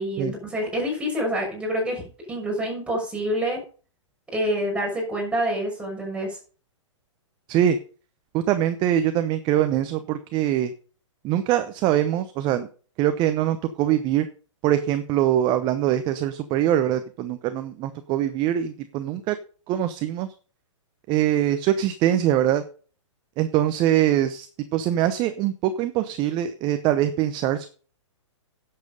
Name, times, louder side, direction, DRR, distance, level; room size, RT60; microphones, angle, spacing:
voice 1, 0.0-2.0 2.3-3.6 4.3-6.4, equal, 5° right, -1 dB, 5.9 m, -27 dB
voice 2, 8.3-10.7 11.2-12.7 13.0-14.3 14.6-19.4 19.7-20.3 21.1-22.6 23.4-24.5 24.7-27.7, right 11 dB, 30° right, 10 dB, 0.8 m, -23 dB
10.5 x 7.6 x 5.4 m, 0.39 s
hypercardioid pair, 135°, 16 cm